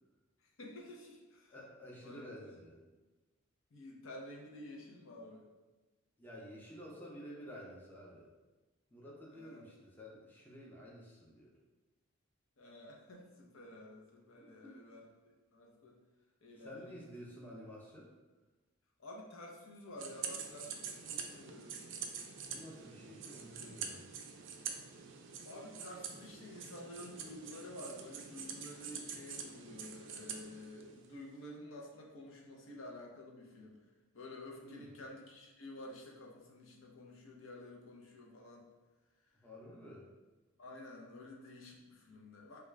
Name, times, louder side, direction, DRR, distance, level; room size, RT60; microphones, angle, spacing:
voice 1, 0.4-1.6 2.0-2.5 3.7-5.5 9.3-9.6 12.6-15.0 15.5-16.0 16.4-17.0 19.0-21.8 23.5-24.0 25.4-33.8 34.1-38.7 40.6-42.6, left 1 dB, 65° left, -1 dB, 0.6 m, -51 dB
voice 2, 1.5-2.7 6.2-8.3 8.9-11.5 14.4-14.8 16.6-18.1 22.5-24.0 34.6-34.9 39.4-40.1, equal, 10° left, -4 dB, 0.5 m, -51 dB
sound 1, 20.0-31.2, right 6 dB, 60° right, 0.4 m, -46 dB
3.5 x 2.3 x 3.2 m, 1.2 s
head